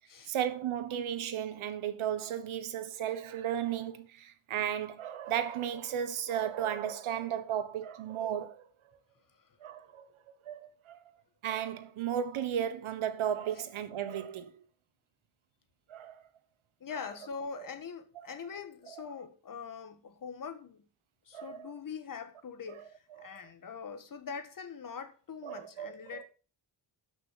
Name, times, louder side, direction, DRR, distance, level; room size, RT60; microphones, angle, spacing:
voice 1, 0.3-8.7 9.6-10.1 10.4-11.0 11.4-14.5 15.9-16.1 18.9-19.0 21.3-21.7 23.2-23.3 25.4-26.2, right 9 dB, 85° right, 1.4 m, -34 dB
voice 2, 16.8-20.8 21.2-26.2, left 6 dB, 45° left, 1.5 m, -43 dB
13.0 x 6.2 x 5.0 m
wide cardioid pair, 145°, 47 cm